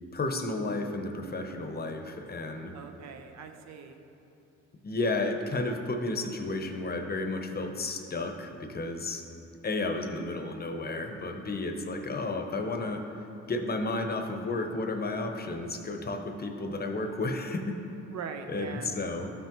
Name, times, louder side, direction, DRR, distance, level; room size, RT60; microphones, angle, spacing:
voice 1, 0.1-2.7 4.8-9.2 9.6-13.0 13.5-17.7 18.5-19.3, left 2 dB, 30° left, 5 dB, 0.8 m, -32 dB
voice 2, 2.7-4.0 18.1-18.9, right 6 dB, 60° right, 6 dB, 0.8 m, -41 dB
13.0 x 5.9 x 3.0 m, 2.7 s
cardioid pair, 90°, 30 cm